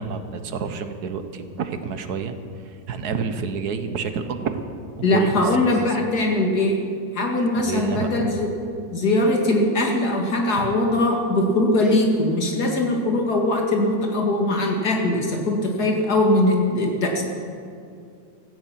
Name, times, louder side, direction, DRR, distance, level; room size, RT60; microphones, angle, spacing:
voice 1, 0.0-2.3 2.6-4.6 5.1-6.0 7.5-8.2 10.6-10.7, right 5 dB, 65° right, 9 dB, 1.5 m, -29 dB
voice 2, 5.0-6.8 7.1-8.5 8.9-17.2, left 1 dB, 60° left, 1 dB, 2.6 m, -21 dB
16.5 x 14.5 x 5.9 m, 2.4 s
omnidirectional pair, 1.9 m